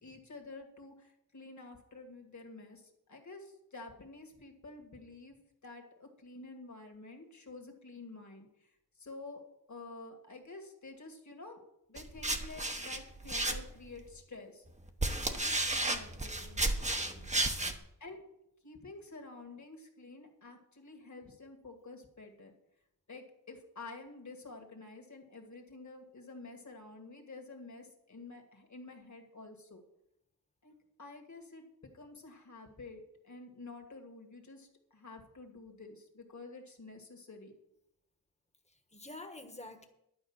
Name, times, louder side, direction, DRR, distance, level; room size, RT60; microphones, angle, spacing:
voice 1, 0.0-8.7 9.0-9.4 9.7-11.6 11.9-14.6 15.2-16.7 18.0-18.2 18.6-22.5 23.1-29.8 30.6-30.7 31.0-37.5, left 3 dB, 50° left, 3 dB, 2.1 m, -50 dB
sound 1, 12.0-14.0 14.7-17.8, right 2 dB, 20° right, 1.0 m, -33 dB
voice 2, 16.9-17.8 26.1-26.2 38.9-39.8, left 2 dB, 15° left, 6 dB, 1.4 m, -49 dB
11.5 x 5.3 x 8.8 m, 0.82 s
wide cardioid pair, 115°, 37 cm